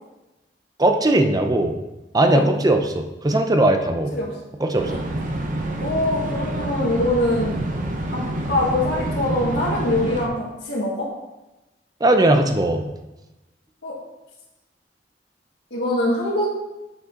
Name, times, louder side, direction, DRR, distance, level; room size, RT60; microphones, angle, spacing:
voice 1, 0.8-1.7 2.1-4.1 4.6-4.9 12.0-12.8, right 1 dB, 20° right, 5 dB, 0.7 m, -19 dB
sound 1, 4.8-10.3, right 1 dB, 50° right, 0.9 m, -27 dB
voice 2, 5.8-7.5 8.1-8.2 8.5-10.4 10.7-11.1 13.8-13.9 15.7-16.5, left 1 dB, 85° left, -8 dB, 1.7 m, -23 dB
8.3 x 6.0 x 3.8 m, 1.0 s
head